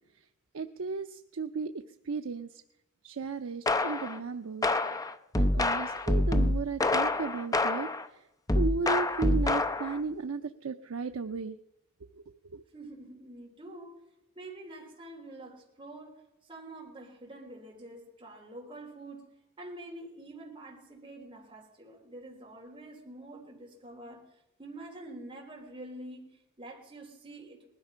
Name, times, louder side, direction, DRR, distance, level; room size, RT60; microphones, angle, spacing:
voice 1, 0.5-1.7 2.0-2.5 3.0-4.7 5.4-7.9 8.5-11.6 12.5-12.6, right 4 dB, 75° right, 7 dB, 0.6 m, -34 dB
sound 1, 3.7-4.2 4.6-8.1 8.5-10.0, left 2 dB, 15° left, 0.6 m, -27 dB
voice 2, 12.7-13.9 14.4-19.3 19.6-24.2 24.6-27.7, right 1 dB, 25° right, -2 dB, 3.8 m, -46 dB
19.5 x 12.5 x 5.6 m, 0.91 s
head